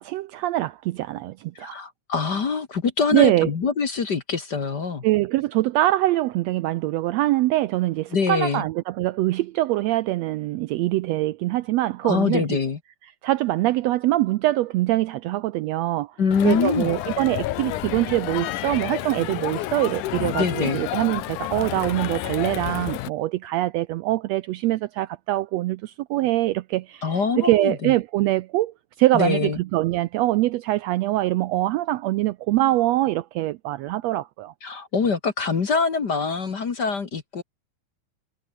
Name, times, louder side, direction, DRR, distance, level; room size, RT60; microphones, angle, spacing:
voice 1, 0.0-1.7 3.1-3.5 5.0-12.5 13.2-16.2 16.4-34.5, right 16 dB, 85° right, 1.5 m, -23 dB
voice 2, 1.6-5.0 8.1-8.6 12.0-12.8 16.2-16.9 20.4-20.8 27.0-27.9 29.1-29.6 34.6-37.4, left 5 dB, 40° left, 1.9 m, -24 dB
Crowd, 16.3-23.1, left 14 dB, 85° left, 2.5 m, -30 dB
omnidirectional pair, 3.5 m